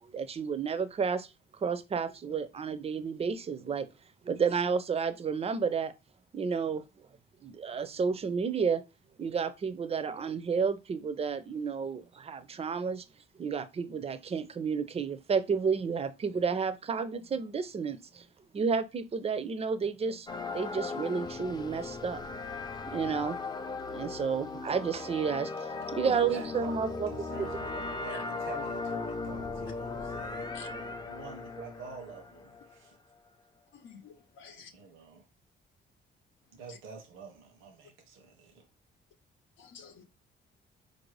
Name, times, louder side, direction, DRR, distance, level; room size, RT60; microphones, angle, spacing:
voice 1, 0.1-1.3 1.6-3.9 4.2-5.9 6.3-6.8 7.4-8.8 9.2-13.0 13.4-18.2 18.5-22.2 22.9-23.4 23.9-27.1 27.4-27.5, right 6 dB, 30° right, 0.5 m, -31 dB
sound 1, 20.3-32.9, left 3 dB, 20° left, 0.5 m, -38 dB
voice 2, 25.7-32.9 34.7-35.3 36.5-38.7, right 5 dB, 90° right, 0.8 m, -47 dB
voice 3, 33.8-34.7 39.7-40.0, left 6 dB, 80° left, 0.7 m, -50 dB
4.2 x 2.6 x 3.2 m
cardioid pair, 90°, 20 cm